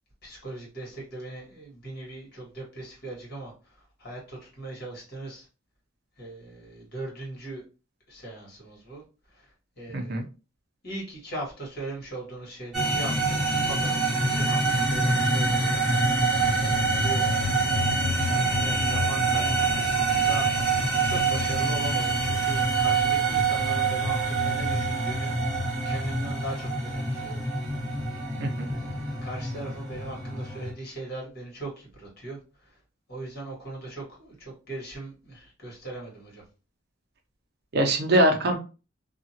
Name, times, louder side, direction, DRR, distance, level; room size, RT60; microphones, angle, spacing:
voice 1, 0.2-5.5 6.2-7.6 8.1-9.0 9.3-10.2 10.8-16.2 16.5-17.3 18.2-20.5 21.0-27.4 28.7-32.8 33.1-36.4, right 2 dB, 55° left, -3 dB, 1.6 m, -39 dB
voice 2, 9.9-10.2 28.4-28.7 37.7-38.6, right 1 dB, 60° right, 4 dB, 0.6 m, -22 dB
sound 1, 12.7-30.7, right 3 dB, 5° right, 1.5 m, -25 dB
2.8 x 2.4 x 2.8 m, 0.33 s
head